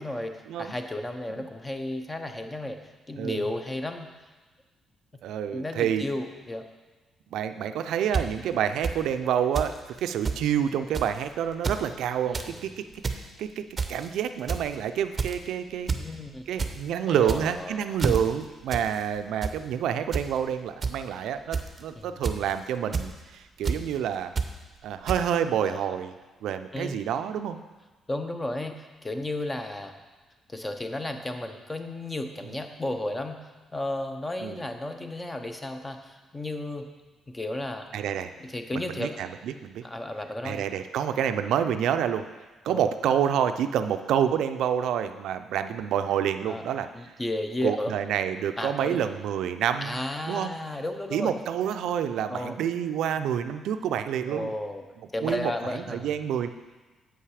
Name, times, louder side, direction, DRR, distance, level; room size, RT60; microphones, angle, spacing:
voice 1, 0.0-4.1 5.5-6.7 12.3-12.6 16.0-16.4 17.1-18.2 21.9-22.2 25.6-25.9 26.7-27.0 28.1-30.0 30.5-33.4 33.7-36.9 37.3-37.9 38.4-39.2 39.8-40.6 42.7-42.9 46.5-46.6 46.9-47.9 48.6-49.0 49.8-51.3 52.3-52.6 54.3-54.8 55.1-56.1, left 1 dB, 20° left, 6 dB, 0.7 m, -33 dB
voice 2, 5.2-6.1 7.3-13.6 13.9-15.9 16.5-24.3 24.8-26.1 26.4-27.6 34.4-34.6 37.9-38.3 38.7-39.8 40.4-42.3 42.6-46.9 47.6-50.5 51.1-54.5 55.2-56.5, right 9 dB, 80° right, 9 dB, 0.4 m, -28 dB
sound 1, 8.1-8.2 8.8-8.9 9.5-9.7 10.0-10.1 10.2-10.4 10.9-11.2 11.5-11.8 12.2-12.5 12.9-13.2 13.8-14.1 14.5-14.7 15.2-15.4 15.9-16.0 16.3-16.7 17.2-17.6 18.0-18.2 18.7-18.9 19.2-19.5 20.1-20.3 20.8-20.9 21.5-21.8 22.2-22.5 22.9-23.1 23.6-23.8 24.4-24.5 25.1-25.2, right 5 dB, 35° right, 0.6 m, -28 dB
7.6 x 5.6 x 4.9 m, 1.2 s
cardioid pair, 90°, 0 cm